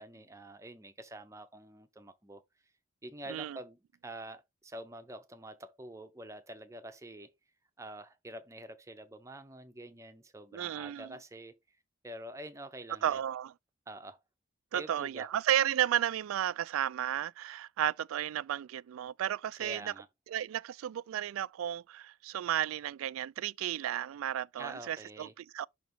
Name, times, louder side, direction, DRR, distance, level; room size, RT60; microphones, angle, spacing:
voice 1, 0.0-2.4 3.0-7.3 7.8-11.8 12.0-13.2 13.9-14.2 14.7-15.3 19.6-20.1 24.6-25.3, right 1 dB, 15° right, 0.6 m, -47 dB
voice 2, 10.5-11.1 13.0-13.5 14.7-19.9 20.3-25.7, right 11 dB, 90° right, 0.3 m, -33 dB
6.1 x 3.0 x 5.1 m
head